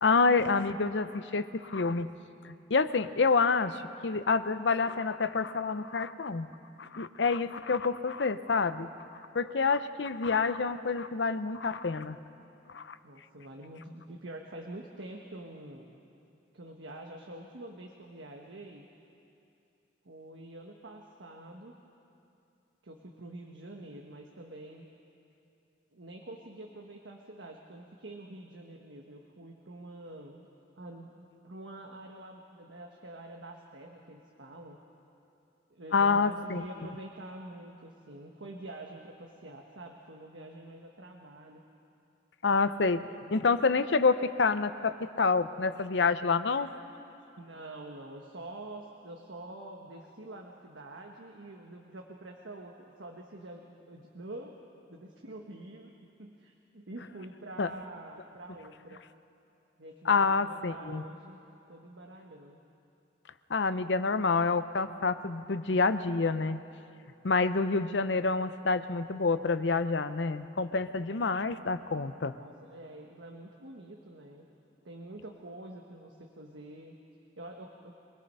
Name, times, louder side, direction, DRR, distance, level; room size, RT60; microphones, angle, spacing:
voice 1, 0.0-2.1 2.4-6.5 6.8-8.9 9.3-12.2 12.7-13.0 35.9-36.6 42.4-46.7 57.6-57.7 60.1-61.0 63.5-66.6 67.2-72.3, left 4 dB, 75° left, 12 dB, 0.7 m, -28 dB
voice 2, 13.0-15.9 16.5-18.9 20.0-21.8 22.8-24.9 25.9-30.5 30.8-34.8 35.7-41.6 47.4-54.6 54.9-55.9 56.2-59.0 59.8-61.4 61.7-62.6 72.3-74.5 74.8-77.0 77.4-77.9, right 1 dB, 85° right, 1 dB, 1.3 m, -46 dB
23.5 x 20.0 x 5.5 m, 2.7 s
head